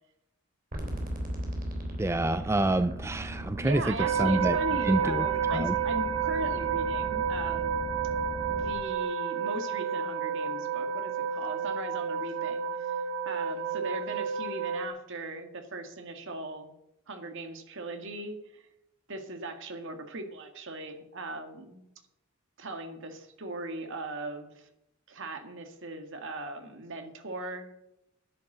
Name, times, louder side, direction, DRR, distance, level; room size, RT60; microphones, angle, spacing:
sound 1, 0.7-8.7, right 1 dB, 40° right, 3.3 m, -38 dB
voice 1, 2.0-4.6 4.8-5.3 5.5-5.7, right 1 dB, 15° right, 12 dB, 0.4 m, -27 dB
voice 2, 3.6-7.8 8.5-13.0 13.3-16.7 17.1-18.6 19.1-21.9 22.6-24.7 25.1-27.7, right 2 dB, 60° right, 6 dB, 1.9 m, -39 dB
sound 2, 4.0-14.9, right 7 dB, 85° right, 1.1 m, -30 dB
10.5 x 10.5 x 6.7 m, 0.86 s
head